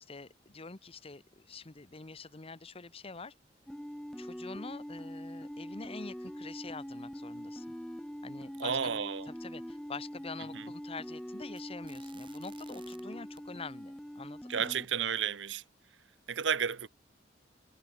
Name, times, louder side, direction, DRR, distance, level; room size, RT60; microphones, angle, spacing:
voice 1, 0.0-3.3 4.2-7.7 8.2-8.9 9.3-14.8, left 4 dB, 30° left, 1.0 m, -46 dB
sound 1, 3.5-13.0 13.4-14.0, right 6 dB, 30° right, 6.8 m, -65 dB
sound 2, 3.7-14.9, equal, 5° left, 0.4 m, -43 dB
voice 2, 8.6-9.3 10.5-10.6 14.5-15.6 16.3-16.9, right 7 dB, 80° right, 0.9 m, -32 dB
head